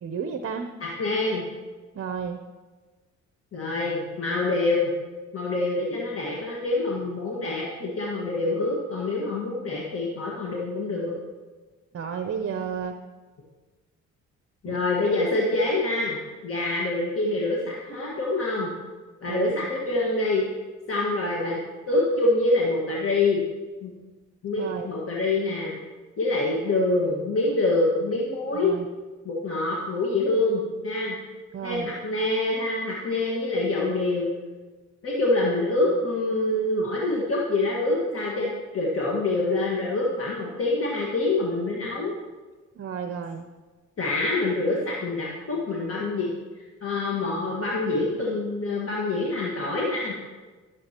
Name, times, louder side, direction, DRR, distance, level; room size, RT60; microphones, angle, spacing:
voice 1, 0.0-0.7 1.9-2.4 11.9-13.0 14.6-14.8 19.3-19.5 24.6-24.9 28.5-28.9 31.5-31.9 42.8-43.4, right 6 dB, 45° right, 7 dB, 0.7 m, -32 dB
voice 2, 0.8-1.5 3.5-4.9 5.3-11.1 14.6-16.2 16.4-18.7 19.2-20.4 20.9-21.6 21.9-23.4 23.8-23.9 24.4-25.8 26.2-28.7 29.2-31.1 31.6-34.3 35.0-42.1 44.0-46.4 46.8-50.1, left 2 dB, 50° left, -4 dB, 1.7 m, -26 dB
14.0 x 7.5 x 2.9 m, 1.3 s
cardioid pair, 90°, 30 cm